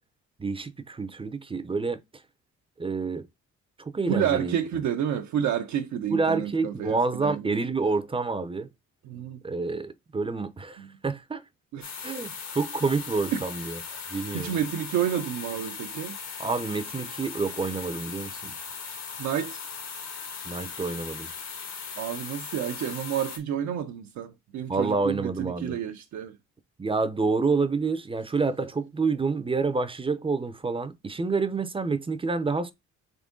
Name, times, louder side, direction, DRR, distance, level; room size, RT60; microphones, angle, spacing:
voice 1, 0.4-2.0 2.8-3.3 3.8-4.5 6.1-8.7 9.4-11.4 12.0-14.6 16.4-18.5 20.4-21.3 24.7-25.8 26.8-32.7, right 4 dB, 20° right, 0.5 m, -28 dB
voice 2, 4.1-7.6 9.0-9.4 10.8-10.9 11.7-12.1 13.3-13.4 14.3-16.2 19.2-19.6 22.0-26.4, right 9 dB, 70° right, 0.5 m, -30 dB
sound 1, 11.8-23.4, left 6 dB, 65° left, 1.2 m, -38 dB
3.8 x 3.5 x 3.7 m
cardioid pair, 90°, 30 cm